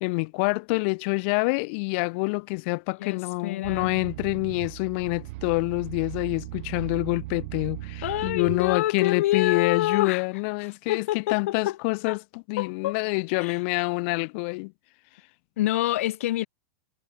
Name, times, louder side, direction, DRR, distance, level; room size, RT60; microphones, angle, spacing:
voice 1, 0.0-14.7, left 32 dB, 55° left, 1.7 m, -27 dB
voice 2, 3.0-3.9 8.0-10.2 10.9-11.8 12.1-12.2 12.6-13.0 13.3-13.6 15.6-16.5, left 15 dB, 70° left, 2.0 m, -27 dB
sound 1, 3.6-8.8, right 21 dB, 60° right, 2.3 m, -38 dB
hypercardioid pair, 120°, 8 cm